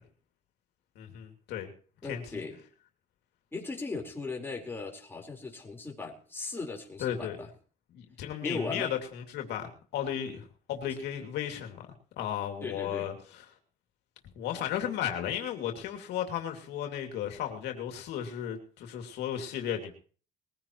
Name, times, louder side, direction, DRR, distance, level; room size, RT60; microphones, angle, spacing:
voice 1, 1.0-1.7 2.1-2.4 7.0-7.4 7.9-11.8 12.2-13.4 14.3-19.9, left 10 dB, 80° left, 4 dB, 2.5 m, -35 dB
voice 2, 2.0-2.6 3.5-7.5 8.4-8.9 12.6-13.1, left 3 dB, 15° left, 0 dB, 4.3 m, -38 dB
21.0 x 15.5 x 3.1 m, 0.42 s
cardioid pair, 110°, 17 cm